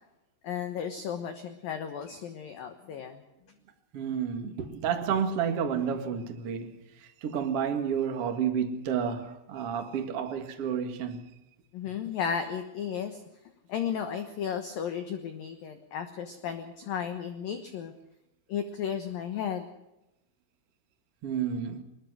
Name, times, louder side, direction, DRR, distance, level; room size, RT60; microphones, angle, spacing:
voice 1, 0.4-3.2 11.7-13.2 13.7-17.9 18.5-19.7, left 8 dB, 70° left, 2.2 m, -34 dB
voice 2, 3.9-11.3 21.2-21.8, right 7 dB, 60° right, 1.5 m, -31 dB
22.0 x 21.0 x 6.3 m
omnidirectional pair, 5.9 m